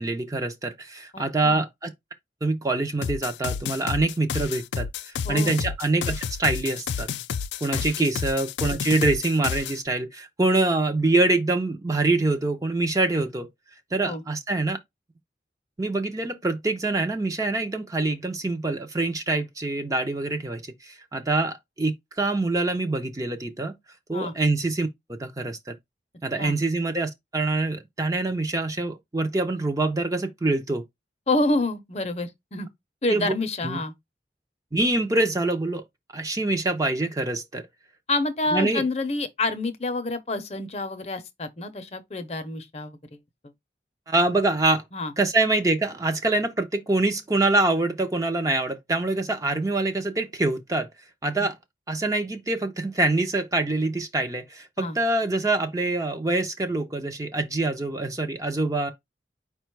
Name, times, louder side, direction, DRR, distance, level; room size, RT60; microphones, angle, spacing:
voice 1, 0.0-1.9 2.4-7.1 7.6-13.5 13.9-14.8 15.8-23.7 24.1-25.7 26.2-30.8 33.1-33.3 33.6-33.8 34.7-35.8 36.1-37.6 38.5-38.9 44.1-44.8 45.2-50.9 51.2-51.6 51.9-58.9, right 2 dB, 20° right, 0.5 m, -25 dB
voice 2, 1.1-1.6 5.3-5.6 8.0-8.1 14.0-14.2 24.1-24.3 26.4-26.5 31.3-32.7 33.0-33.9 38.1-43.2 44.9-45.1 51.4-51.5 54.8-55.0, left 2 dB, 35° left, 0.6 m, -28 dB
sound 1, 3.0-9.8, left 7 dB, 85° left, 0.4 m, -30 dB
4.9 x 2.2 x 4.5 m
head